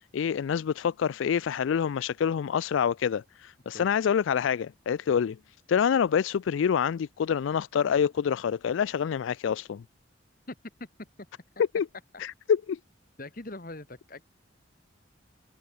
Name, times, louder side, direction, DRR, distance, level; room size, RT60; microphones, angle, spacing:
voice 1, 0.1-5.4 5.7-9.8 11.7-11.9 12.2-12.8, left 7 dB, 80° left, 0.3 m, -26 dB
voice 2, 10.5-11.1 13.2-14.2, left 2 dB, 45° left, 1.8 m, -42 dB
head